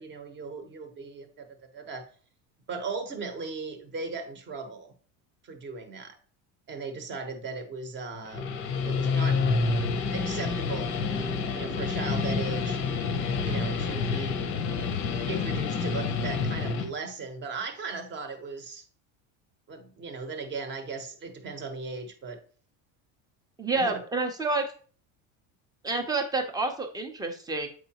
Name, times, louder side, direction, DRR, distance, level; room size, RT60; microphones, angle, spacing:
voice 1, 0.0-2.1 2.7-4.9 5.4-6.2 6.7-8.5 8.8-9.4 10.1-10.9 11.5-12.8 13.4-14.4 15.3-18.8 19.7-22.4 23.7-24.0, right 4 dB, 30° right, 7 dB, 1.0 m, -37 dB
Guitar, 8.2-16.9, left 4 dB, 35° left, 0.6 m, -28 dB
voice 2, 23.6-24.7 25.8-27.7, right 3 dB, 10° right, 5 dB, 0.7 m, -28 dB
7.9 x 4.7 x 2.9 m, 0.42 s
cardioid pair, 165°, 38 cm